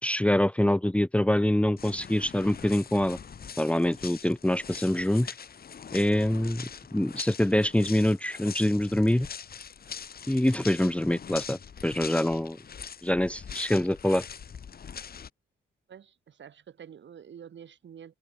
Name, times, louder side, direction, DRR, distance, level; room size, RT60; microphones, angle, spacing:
voice 1, 0.0-3.2 3.6-5.3 5.9-9.3 10.3-12.6 13.0-14.3, left 1 dB, 5° left, 1.4 m, -25 dB
sound 1, 1.8-15.3, left 7 dB, 45° left, 2.1 m, -43 dB
voice 2, 15.9-18.1, right 8 dB, 60° right, 5.9 m, -48 dB
open air
cardioid pair, 95°, 21 cm